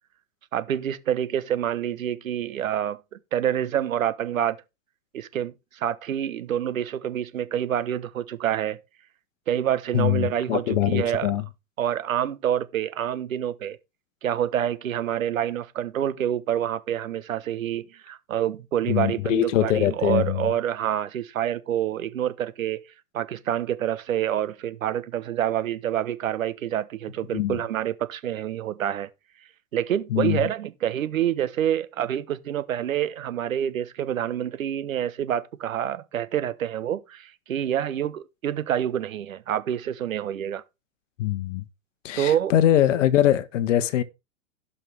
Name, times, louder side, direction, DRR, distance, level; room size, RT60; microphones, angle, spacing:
voice 1, 0.5-3.0 3.3-4.6 5.1-8.8 9.5-11.3 11.8-13.8 14.2-22.9 23.1-29.1 29.7-40.6 42.2-42.5, right 10 dB, 80° right, 1.2 m, -27 dB
voice 2, 9.9-11.4 18.9-20.5 27.3-27.6 30.1-30.5 41.2-41.6 42.0-44.0, left 11 dB, 65° left, 1.3 m, -23 dB
16.5 x 5.6 x 3.4 m
hypercardioid pair, 115°, 40 cm